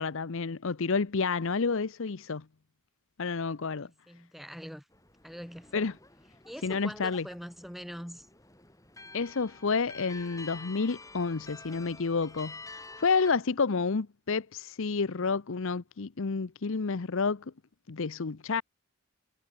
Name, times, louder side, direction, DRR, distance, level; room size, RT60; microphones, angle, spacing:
voice 1, 0.0-2.4 3.2-3.9 5.7-5.9 6.6-7.2 9.1-12.6 13.0-17.4 17.9-18.6, left 4 dB, 60° left, 0.7 m, -29 dB
voice 2, 3.8-4.9 5.2-6.0 6.4-8.3, equal, ahead, 7.9 m, -43 dB
sound 1, 4.9-13.3, left 3 dB, 15° left, 7.2 m, -49 dB
head